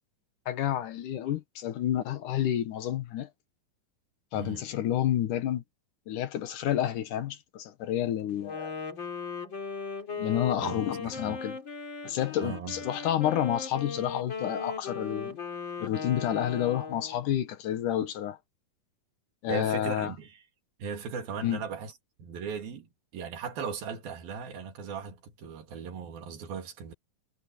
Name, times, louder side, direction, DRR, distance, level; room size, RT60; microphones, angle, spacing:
voice 1, 0.5-3.3 4.3-5.6 6.1-8.7 10.2-11.6 12.0-15.4 15.8-18.4 19.4-20.1 21.4-21.6, left 11 dB, 70° left, 2.5 m, -29 dB
Wind instrument woodwind instrument, 8.3-17.3, left 5 dB, 35° left, 3.7 m, -38 dB
voice 2, 10.6-11.4 12.4-12.8 19.5-20.4 20.8-21.9 22.2-26.9, right 6 dB, 85° right, 4.4 m, -38 dB
omnidirectional pair, 4.1 m